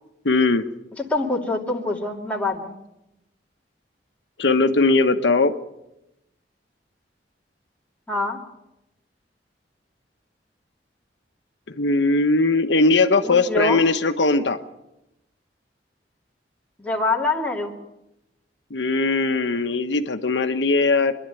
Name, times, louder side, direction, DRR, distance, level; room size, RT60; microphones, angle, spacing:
voice 1, 0.2-0.6 4.4-5.5 11.7-14.6 18.7-21.2, left 3 dB, 80° left, 7 dB, 1.1 m, -19 dB
voice 2, 1.0-2.8 8.1-8.4 13.2-13.8 16.8-17.7, left 2 dB, 10° left, -2 dB, 2.7 m, -25 dB
26.0 x 11.5 x 9.0 m, 0.90 s
head